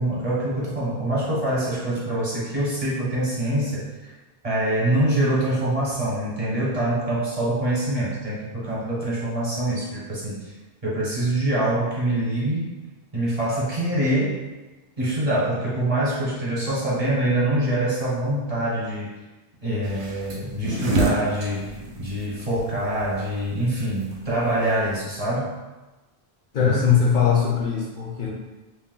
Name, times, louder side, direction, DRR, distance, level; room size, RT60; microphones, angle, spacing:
voice 1, 0.0-4.1 4.4-10.5 10.8-12.7 13.1-14.4 15.0-19.1 19.6-21.7 22.0-25.5 26.6-26.7, right 1 dB, 40° right, -7 dB, 0.9 m, -25 dB
sound 1, 19.8-24.9, right 2 dB, 65° right, 0.7 m, -29 dB
voice 2, 26.5-28.3, left 7 dB, 60° left, -3 dB, 0.6 m, -20 dB
2.7 x 2.1 x 3.7 m, 1.1 s
omnidirectional pair, 1.0 m